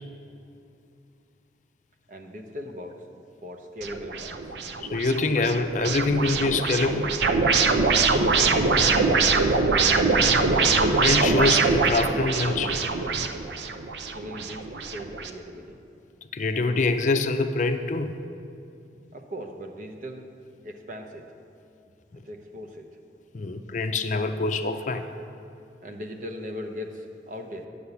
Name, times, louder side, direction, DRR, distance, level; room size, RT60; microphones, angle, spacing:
voice 1, 2.1-3.0 3.4-4.5 8.4-10.2 14.1-15.8 19.1-20.2 20.6-21.3 22.2-22.9 25.8-27.7, equal, 45° right, 3 dB, 0.8 m, -38 dB
sound 1, 3.8-15.3, right 4 dB, 75° right, 0.6 m, -23 dB
voice 2, 4.8-7.1 11.0-12.8 16.3-18.2 23.3-25.0, left 3 dB, 45° left, 7 dB, 0.5 m, -25 dB
9.5 x 6.8 x 7.0 m, 2.6 s
head